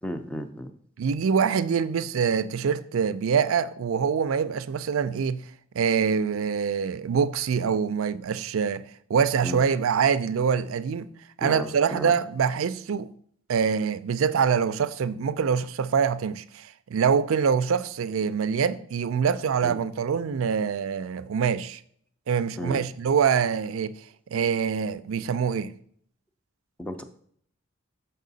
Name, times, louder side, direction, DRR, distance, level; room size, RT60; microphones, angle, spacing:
voice 1, 0.0-0.7 9.4-9.6 11.4-12.2 19.6-19.8 22.6-22.8 26.8-27.0, equal, 5° left, 0.5 m, -34 dB
voice 2, 1.0-5.4 5.7-8.8 9.1-11.1 11.4-13.1 13.5-21.8 22.3-23.9 24.3-25.7, right 6 dB, 80° right, 0.4 m, -25 dB
6.5 x 5.5 x 3.9 m
head